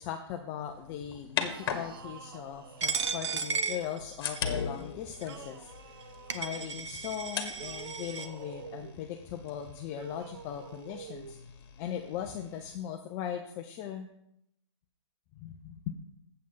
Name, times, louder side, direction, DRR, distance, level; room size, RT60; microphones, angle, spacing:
voice 1, 0.0-5.9 6.3-11.4 11.8-14.1 15.4-15.9, left 10 dB, 15° left, 5 dB, 0.4 m, -39 dB
sound 1, 0.7-2.9 3.7-12.8, left 6 dB, 50° left, 1.3 m, -41 dB
sound 2, 1.4-4.1 5.2-6.7 7.5-9.0 9.9-11.4, right 8 dB, 50° right, 0.6 m, -48 dB
Coin (dropping), 2.8-4.6 5.2-5.3 6.0-6.1 6.3-8.3, right 5 dB, 70° right, 0.9 m, -34 dB
7.6 x 7.3 x 5.5 m, 0.74 s
hypercardioid pair, 155°, 16 cm